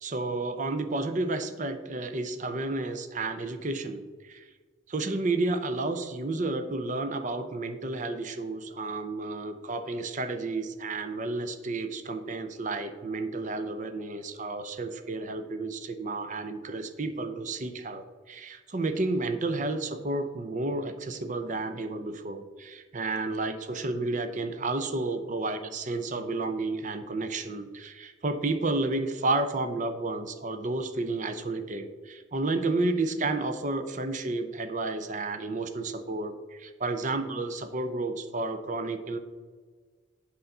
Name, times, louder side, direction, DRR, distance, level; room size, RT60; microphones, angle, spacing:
voice 1, 0.0-4.5 4.9-39.2, right 2 dB, 40° right, 9 dB, 0.6 m, -31 dB
8.3 x 3.9 x 6.7 m, 1.5 s
head